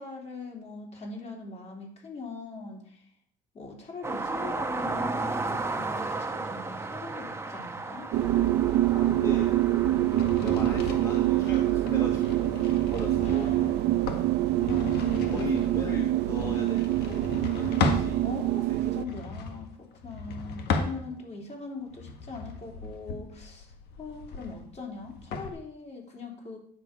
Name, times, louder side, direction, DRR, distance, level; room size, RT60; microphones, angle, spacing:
voice 1, 0.0-3.0 3.5-8.1 12.3-12.4 13.2-14.2 14.6-15.6 18.2-26.6, left 4 dB, 40° left, 0 dB, 3.3 m, -41 dB
sound 1, 4.0-15.5 16.9-17.0, right 3 dB, 15° right, 0.9 m, -36 dB
sound 2, 8.1-19.0, right 14 dB, 80° right, 0.6 m, -25 dB
voice 2, 8.9-9.6 10.4-13.5 15.2-18.2 18.7-18.8, left 2 dB, 20° left, -1 dB, 1.5 m, -38 dB
sound 3, 9.8-18.1 18.9-21.4 21.9-25.5, left 4 dB, 75° left, 1.5 m, -36 dB
9.6 x 6.6 x 5.0 m, 0.62 s
cardioid pair, 110°, 17 cm